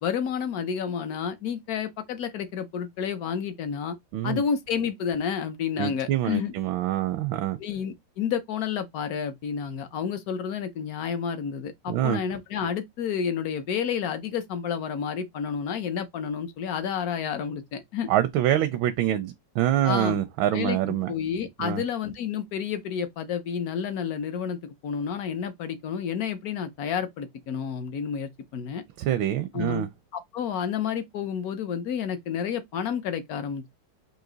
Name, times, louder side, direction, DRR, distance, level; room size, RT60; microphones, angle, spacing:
voice 1, 0.0-4.0 4.2-6.5 7.6-18.1 19.8-20.2 20.5-20.8 21.1-28.8 29.5-29.8 30.1-33.7, left 7 dB, 60° left, 1.0 m, -30 dB
voice 2, 5.8-7.6 11.9-12.2 18.1-21.1 21.6-21.8 29.0-29.9, right 12 dB, 85° right, 1.4 m, -25 dB
4.8 x 2.8 x 3.8 m
omnidirectional pair, 2.1 m